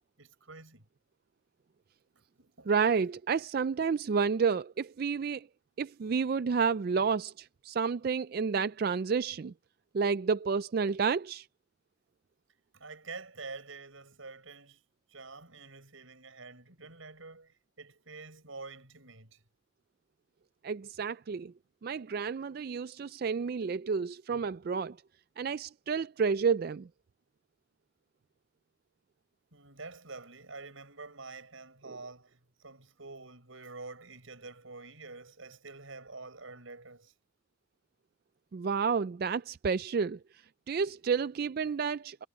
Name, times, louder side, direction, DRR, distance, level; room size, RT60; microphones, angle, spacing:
voice 1, 0.2-0.8 2.4-2.7 12.7-14.8 15.1-19.3 29.5-37.1, right 3 dB, 85° right, 6.7 m, -47 dB
voice 2, 2.7-5.5 5.8-9.5 9.9-11.5 20.6-21.5 21.8-25.0 25.4-26.9 31.8-32.0 38.5-40.2 40.7-42.2, right 5 dB, 50° right, 0.3 m, -30 dB
head